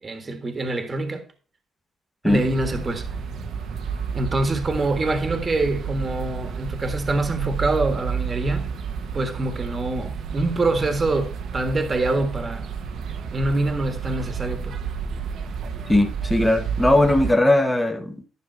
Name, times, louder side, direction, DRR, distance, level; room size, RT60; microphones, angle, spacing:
voice 1, 0.0-1.3 2.2-3.1 4.1-8.8 9.1-12.7 13.3-14.8, right 2 dB, 30° right, 1.5 m, -25 dB
sound 1, 2.3-17.4, right 6 dB, 70° right, 1.1 m, -31 dB
voice 2, 15.9-18.2, left 1 dB, 10° left, 1.4 m, -19 dB
11.0 x 5.5 x 4.5 m
cardioid pair, 90°, 0 cm